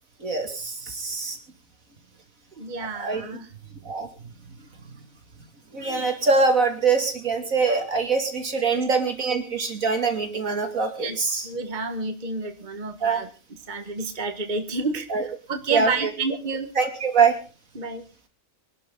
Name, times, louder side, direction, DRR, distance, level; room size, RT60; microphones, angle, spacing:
voice 1, 0.2-1.4 2.9-3.2 3.8-4.1 5.7-11.5 13.0-13.2 15.1-15.2 15.7-16.1 16.8-17.4, right 4 dB, 70° right, 5 dB, 3.2 m, -23 dB
voice 2, 2.6-3.5 8.7-8.8 11.0-11.2 11.4-13.3 13.7-16.7 17.8-18.0, right 3 dB, 35° right, 7 dB, 1.7 m, -30 dB
25.0 x 12.0 x 3.9 m, 0.35 s
omnidirectional pair, 1.5 m